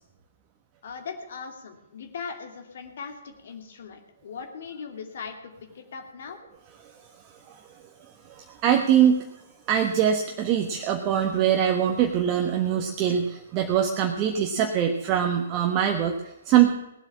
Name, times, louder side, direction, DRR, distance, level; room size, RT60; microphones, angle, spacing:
voice 1, 0.8-6.4, left 5 dB, 55° left, 4 dB, 2.7 m, -39 dB
voice 2, 8.3-9.3 9.7-16.7, right 9 dB, 30° right, 3 dB, 1.3 m, -23 dB
19.0 x 8.1 x 7.2 m, 0.90 s
figure-of-eight pair, 120°, 0 cm